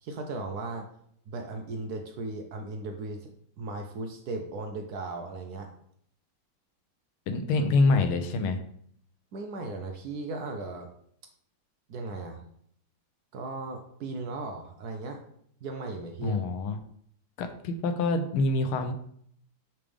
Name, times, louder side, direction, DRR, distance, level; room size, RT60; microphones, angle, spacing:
voice 1, 0.0-0.9 1.3-3.3 3.6-5.7 7.6-7.9 8.2-8.3 9.3-10.9 11.9-12.4 13.3-15.2 15.6-16.4, right 3 dB, 70° right, 4 dB, 0.9 m, -37 dB
voice 2, 7.3-8.6 16.2-16.8 17.4-18.9, left 3 dB, 80° left, 7 dB, 1.6 m, -26 dB
8.5 x 3.4 x 3.5 m, 0.66 s
omnidirectional pair, 2.4 m